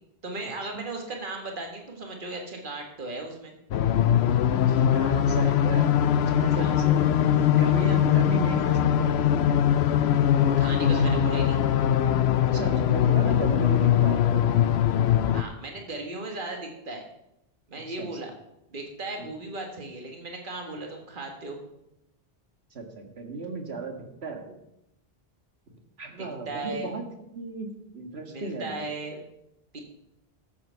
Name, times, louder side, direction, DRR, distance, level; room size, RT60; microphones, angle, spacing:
voice 1, 0.2-3.5 6.5-6.7 10.6-11.6 15.3-17.0 17.7-18.3 18.7-21.6 26.2-26.9 28.3-29.2 29.7-29.8, right 2 dB, 55° right, 2 dB, 1.9 m, -36 dB
sound 1, 3.7-15.4, left 9 dB, 80° left, 0.9 m, -22 dB
voice 2, 4.5-5.9 6.3-7.0 7.5-9.6 10.3-10.6 10.9-11.0 12.4-14.6 17.9-18.1 19.2-19.3 22.7-24.6 26.0-27.0 27.4-28.8, right 3 dB, 75° right, 3 dB, 2.0 m, -35 dB
14.0 x 7.4 x 5.7 m, 0.84 s
omnidirectional pair, 1.1 m